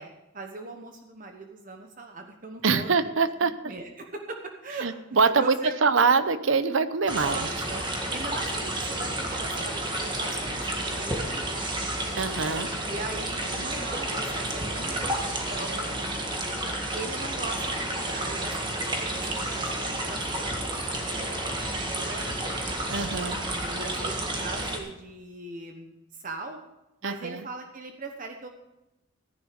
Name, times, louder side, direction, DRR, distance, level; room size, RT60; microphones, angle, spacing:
voice 1, 0.0-3.1 3.4-4.9 5.2-5.8 7.0-7.8 8.1-11.9 12.8-16.2 16.9-22.9 23.6-26.6 27.0-28.5, right 3 dB, 40° right, 4 dB, 1.1 m, -40 dB
voice 2, 2.6-3.5 4.8-5.5 5.8-7.5 12.2-12.7 22.9-23.4 27.0-27.4, right 5 dB, 75° right, 13 dB, 0.7 m, -24 dB
sound 1, 7.1-24.8, right 1 dB, 20° right, 1.7 m, -31 dB
14.5 x 10.0 x 5.1 m, 0.95 s
head